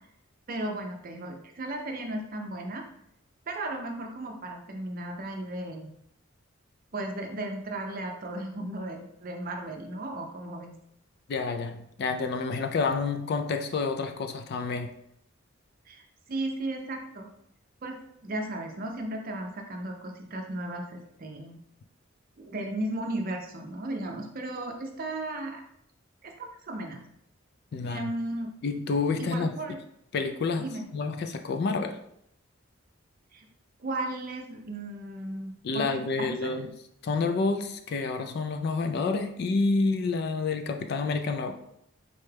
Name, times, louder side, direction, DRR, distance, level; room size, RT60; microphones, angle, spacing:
voice 1, 0.5-2.8 3.5-5.9 6.9-10.7 15.9-17.3 17.8-21.6 22.4-25.6 26.2-27.0 27.8-28.5 29.2-29.8 30.6-30.9 33.3-33.5 33.8-36.5, right 1 dB, 45° right, 3 dB, 0.5 m, -35 dB
voice 2, 11.3-14.9 27.7-28.1 28.6-29.6 30.1-30.6 30.9-32.0 35.6-36.7 37.0-41.6, left 4 dB, 50° left, 6 dB, 0.3 m, -28 dB
4.1 x 2.3 x 3.2 m, 0.74 s
head